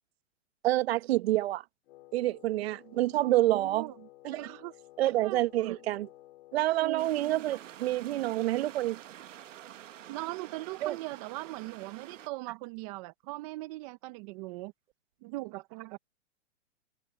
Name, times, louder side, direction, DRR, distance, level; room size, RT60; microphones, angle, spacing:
voice 1, 0.6-1.6 2.1-3.9 4.2-4.4 5.0-6.1 6.5-9.0 10.8-10.9, right 15 dB, 55° right, 1.3 m, -28 dB
Wind instrument woodwind instrument, 1.8-7.5, left 17 dB, 50° left, 2.7 m, -55 dB
voice 2, 3.5-4.1 4.4-4.7 5.2-5.8 6.8-7.5 10.1-14.7 15.2-16.0, right 21 dB, 30° right, 0.7 m, -40 dB
sound 1, 7.0-12.3, right 11 dB, 80° right, 1.6 m, -48 dB
hypercardioid pair, 150°, 37 cm